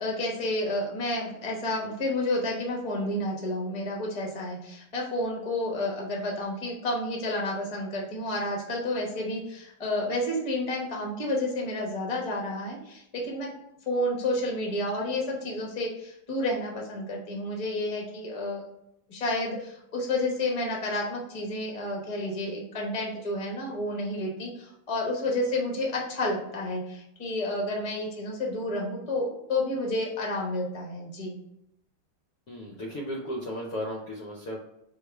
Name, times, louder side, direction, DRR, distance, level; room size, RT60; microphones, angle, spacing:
voice 1, 0.0-13.5 13.9-18.6 19.1-31.3, left 1 dB, 40° left, -1 dB, 0.4 m, -30 dB
voice 2, 32.5-34.6, equal, 70° left, -2 dB, 0.9 m, -35 dB
4.6 x 2.4 x 4.5 m, 0.79 s
omnidirectional pair, 2.3 m